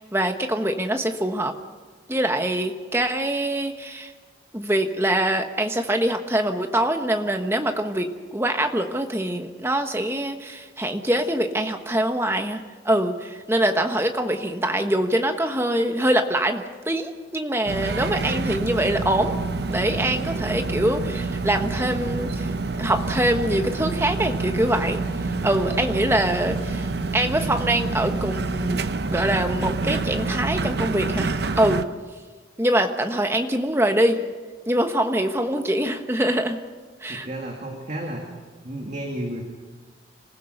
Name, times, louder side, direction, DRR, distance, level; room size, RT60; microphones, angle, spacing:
voice 1, 0.1-1.6 2.1-4.1 4.5-19.4 19.7-25.0 25.4-28.8 29.1-31.8 32.6-34.2 34.7-36.6 37.0-37.3, right 1 dB, 15° right, 6 dB, 1.2 m, -24 dB
sound 1, 17.7-31.8, right 3 dB, 60° right, 0.8 m, -27 dB
voice 2, 37.1-39.4, right 1 dB, 40° right, 0 dB, 2.2 m, -32 dB
26.0 x 15.5 x 6.7 m, 1.4 s
head